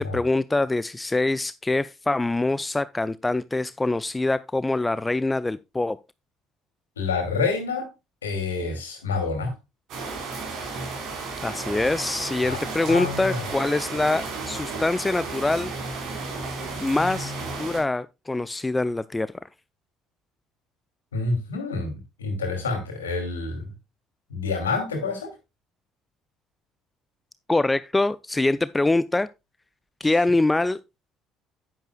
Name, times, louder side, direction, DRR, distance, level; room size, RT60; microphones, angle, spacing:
voice 1, 0.0-6.0 11.4-15.7 16.8-19.3 27.5-29.3 30.0-30.8, left 2 dB, 15° left, 0.4 m, -24 dB
voice 2, 7.0-7.9 8.2-9.5 12.4-13.5 21.1-23.7 24.3-25.3, left 4 dB, 80° left, 2.6 m, -28 dB
sound 1, 9.9-17.8, right 3 dB, 55° right, 4.2 m, -33 dB
10.0 x 9.7 x 2.3 m
figure-of-eight pair, 55°, 0 cm